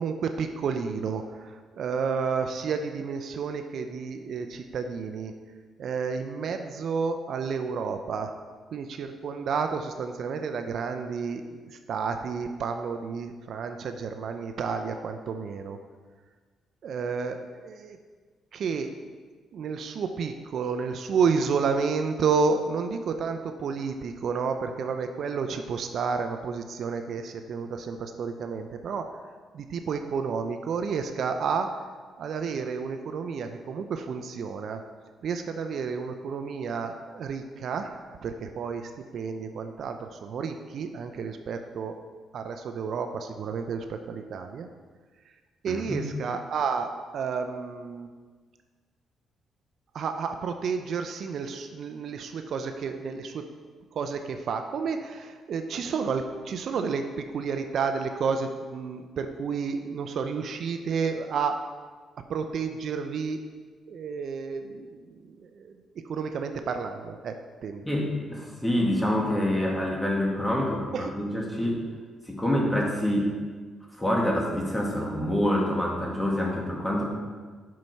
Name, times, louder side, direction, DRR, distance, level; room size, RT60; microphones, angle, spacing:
voice 1, 0.0-5.3 5.8-8.3 8.7-15.8 16.8-18.0 18.5-18.9 19.5-29.2 29.5-31.8 32.2-34.8 35.2-42.0 42.3-44.7 45.6-48.1 49.9-53.5 53.9-61.6 62.3-63.4 63.9-67.8 70.9-71.1, right 5 dB, 65° right, 7 dB, 0.6 m, -31 dB
voice 2, 45.7-46.0 67.8-71.8 72.3-73.3 74.0-77.1, left 1 dB, 10° left, -1 dB, 2.0 m, -26 dB
7.7 x 5.7 x 5.4 m, 1.5 s
cardioid pair, 90°, 0 cm